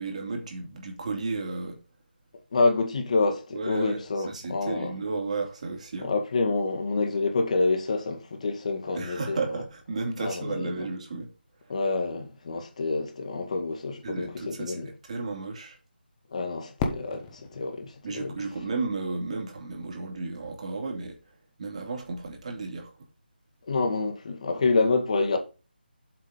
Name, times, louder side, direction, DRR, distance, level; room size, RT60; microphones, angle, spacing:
voice 1, 0.0-1.8 3.5-6.1 8.9-11.3 14.0-15.8 18.0-21.2 21.6-22.9, right 3 dB, 40° right, 2.9 m, -33 dB
voice 2, 2.5-4.9 6.0-9.4 10.2-10.9 11.7-14.9 16.3-18.4 23.6-25.4, left 3 dB, 40° left, 2.1 m, -27 dB
Fireworks, 16.8-19.7, left 4 dB, 15° left, 1.4 m, -36 dB
7.8 x 5.9 x 5.5 m
figure-of-eight pair, 160°, 6 cm